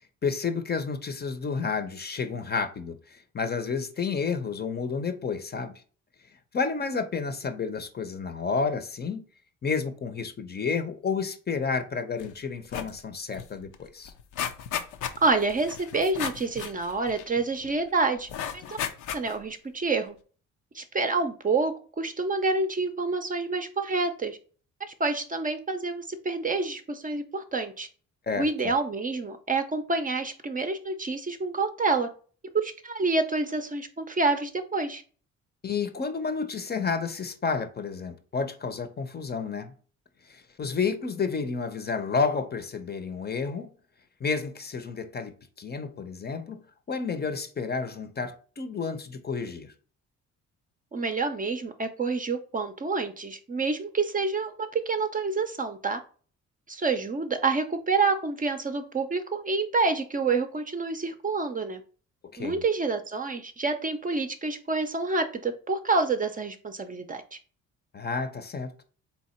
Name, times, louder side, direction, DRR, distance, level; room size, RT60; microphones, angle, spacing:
voice 1, 0.2-5.7 6.5-9.2 9.6-14.1 28.3-28.7 35.6-39.7 40.3-43.7 44.2-46.6 46.9-49.7 62.3-62.6 67.9-68.8, left 5 dB, 35° left, 0.7 m, -31 dB
sound 1, 12.2-12.4 12.7-13.0 13.3-13.4 13.7-17.7 18.3-19.5 20.0-20.1, left 9 dB, 80° left, 0.6 m, -35 dB
voice 2, 15.2-18.3 18.5-18.8 19.1-20.1 20.7-24.4 25.0-27.9 28.4-32.1 32.5-35.0 50.9-56.0 56.7-61.8 62.4-67.2, right 3 dB, 25° right, 0.6 m, -28 dB
3.7 x 2.9 x 4.3 m
cardioid pair, 90°, 30 cm